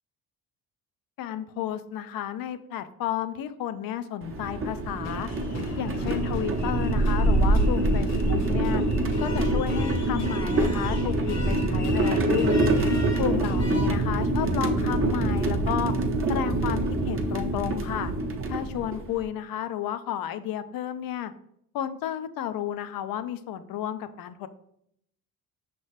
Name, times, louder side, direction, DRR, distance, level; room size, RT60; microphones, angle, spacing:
voice 1, 1.2-5.3 5.8-8.8 9.2-12.6 13.2-15.9 16.3-18.1 18.5-21.3 21.7-24.5, left 10 dB, 65° left, 12 dB, 0.5 m, -32 dB
sound 1, 4.2-19.2, right 2 dB, 35° right, 0.7 m, -25 dB
sound 2, 5.0-14.0, left 3 dB, 45° left, 0.9 m, -40 dB
5.5 x 3.0 x 3.1 m, 0.72 s
supercardioid pair, 70°, 39 cm